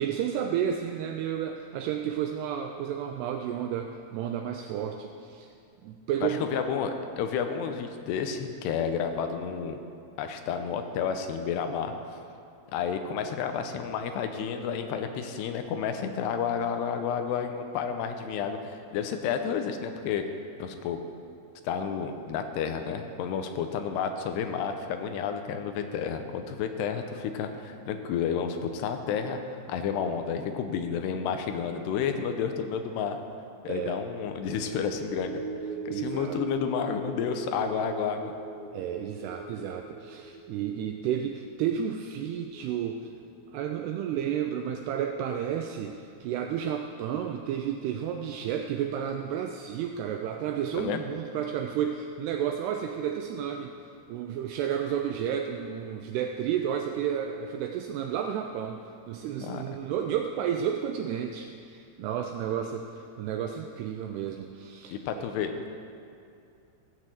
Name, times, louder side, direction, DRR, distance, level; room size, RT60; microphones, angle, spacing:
voice 1, 0.0-5.5 5.8-6.6 33.7-34.0 35.9-36.4 38.7-43.1 43.5-53.7 54.1-65.3, right 9 dB, 85° right, 4 dB, 2.3 m, -32 dB
voice 2, 6.2-9.8 10.2-11.9 12.7-20.2 20.6-21.0 21.6-33.2 33.6-35.4 35.9-38.3 50.7-51.0 59.4-59.6 64.9-65.5, left 7 dB, 80° left, 6 dB, 2.6 m, -31 dB
sound 1, 34.3-44.9 45.2-45.4, right 3 dB, 70° right, 1.7 m, -41 dB
15.5 x 6.4 x 7.5 m, 2.5 s
omnidirectional pair, 5.3 m